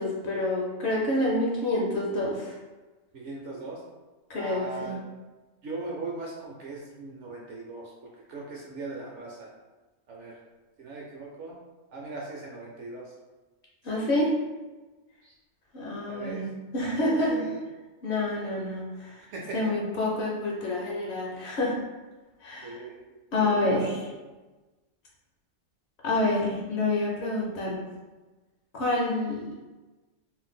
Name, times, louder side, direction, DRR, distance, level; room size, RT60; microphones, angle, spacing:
voice 1, 0.0-2.5 4.3-4.9 13.8-14.3 15.7-16.5 16.7-17.4 18.0-19.1 19.5-21.8 22.4-22.8 23.3-23.9 26.0-27.8 28.7-29.4, left 2 dB, 60° left, -4 dB, 0.8 m, -27 dB
voice 2, 3.1-3.8 4.4-5.0 5.6-7.9 8.3-9.5 10.1-10.4 10.8-11.5 11.9-13.0 13.9-14.3 15.2-15.3 16.1-16.5 17.1-17.6 19.3-19.6 22.6-23.0 23.4-23.9, right 3 dB, 65° right, -2 dB, 0.8 m, -38 dB
2.6 x 2.1 x 3.6 m, 1.2 s
omnidirectional pair, 1.5 m